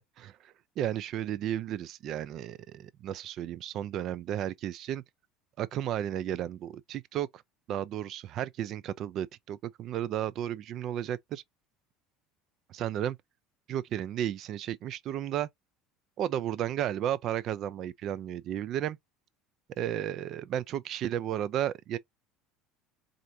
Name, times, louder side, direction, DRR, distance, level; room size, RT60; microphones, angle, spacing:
voice 1, 0.2-5.0 5.6-7.4 7.7-11.4 12.7-13.2 13.7-15.5 16.2-19.0 19.8-22.0, right 11 dB, 40° right, 0.4 m, -33 dB
4.5 x 2.5 x 2.6 m
cardioid pair, 170°, 0 cm